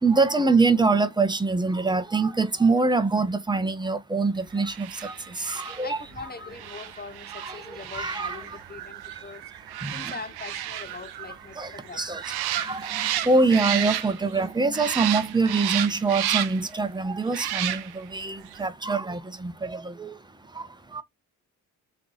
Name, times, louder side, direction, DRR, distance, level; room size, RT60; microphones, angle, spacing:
voice 1, 0.0-6.0 7.4-8.6 9.2-9.3 9.8-10.1 11.6-21.0, right 3 dB, 10° right, 1.0 m, -25 dB
sound 1, 4.7-14.4 14.7-16.7 17.3-18.1 18.5-18.6, right 12 dB, 85° right, 0.6 m, -32 dB
voice 2, 5.8-9.4 9.9-12.0, left 4 dB, 25° left, 0.8 m, -41 dB
3.2 x 3.2 x 4.0 m
supercardioid pair, 55°, 38 cm